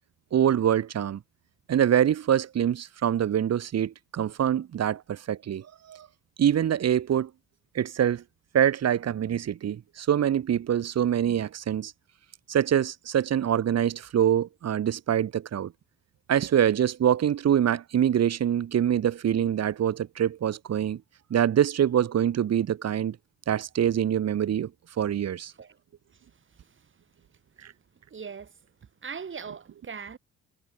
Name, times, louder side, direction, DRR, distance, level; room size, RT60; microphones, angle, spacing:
voice 1, 0.3-1.2 1.7-6.1 6.4-7.3 7.8-8.2 8.5-11.9 12.5-15.7 16.3-21.0 21.3-23.2 23.5-24.7 25.0-25.5, right 9 dB, 60° right, 2.1 m, -25 dB
voice 2, 28.1-28.5 29.0-30.2, right 6 dB, 40° right, 6.1 m, -40 dB
cardioid pair, 90°, 30 cm